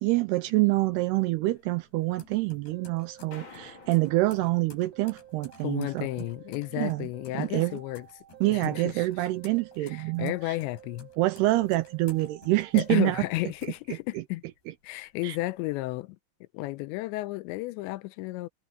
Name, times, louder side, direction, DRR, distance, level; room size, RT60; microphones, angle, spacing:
voice 1, 0.0-6.1 6.8-7.1 7.3-7.8 8.4-10.6 11.2-13.2 14.1-14.2 15.2-15.4, right 19 dB, 85° right, 2.4 m, -26 dB
sound 1, 0.7-14.5 14.9-15.8, left 4 dB, 60° left, 6.9 m, -55 dB
sound 2, 2.7-4.6 4.9-6.8 7.1-9.0 9.3-11.2 11.6-13.4, right 13 dB, 35° right, 4.2 m, -52 dB
sound 3, 3.3-5.3, left 5 dB, 35° left, 2.4 m, -51 dB
voice 2, 5.6-8.1 8.5-9.3 9.8-11.1 12.7-14.4 14.8-16.2 16.5-18.5, left 20 dB, 85° left, 2.9 m, -33 dB
omnidirectional pair, 5.2 m